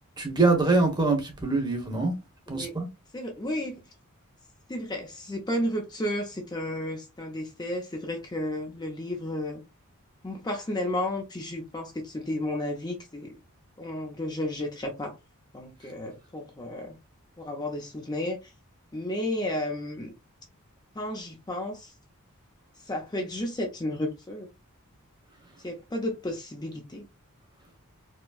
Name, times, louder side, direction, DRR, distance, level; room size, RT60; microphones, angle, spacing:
voice 1, 0.2-2.1 2.5-2.9, right 3 dB, 20° right, 1.0 m, -24 dB
voice 2, 3.1-3.8 4.7-9.6 10.2-13.3 13.8-15.1 15.5-17.0 17.4-18.4 18.9-20.1 21.0-21.9 22.9-24.5 25.6-27.0, left 1 dB, 20° left, 0.6 m, -32 dB
4.5 x 2.2 x 2.3 m
head